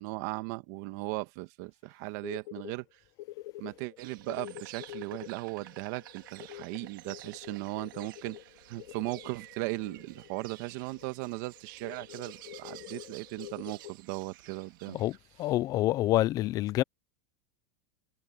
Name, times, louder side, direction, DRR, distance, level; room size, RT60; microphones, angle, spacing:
voice 1, 0.0-2.8 3.6-8.4 8.7-15.0, right 22 dB, 55° right, 1.7 m, -37 dB
sound 1, 2.2-2.7 3.2-10.6 11.0-11.1 11.4-11.5 11.8-13.9, left 16 dB, 60° left, 2.7 m, -46 dB
Insect, 4.0-15.2, right 17 dB, 75° right, 2.8 m, -52 dB
voice 2, 14.9-16.8, left 16 dB, 35° left, 0.5 m, -27 dB
supercardioid pair, 150°, 11 cm